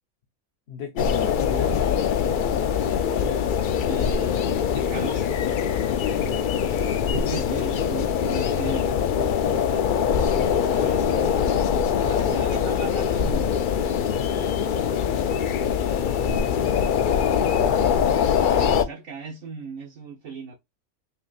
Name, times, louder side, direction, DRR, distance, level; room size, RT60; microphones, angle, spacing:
voice 1, 0.7-2.9 6.0-6.9 7.5-7.8 15.6-17.9, left 6 dB, 55° left, 0.9 m, -36 dB
sound 1, 1.0-18.8, left 7 dB, 80° left, 0.4 m, -23 dB
voice 2, 3.9-5.2 7.1-11.7 12.0-13.6 18.5-20.5, right 5 dB, 75° right, 1.5 m, -38 dB
5.6 x 2.8 x 2.4 m
omnidirectional pair, 1.5 m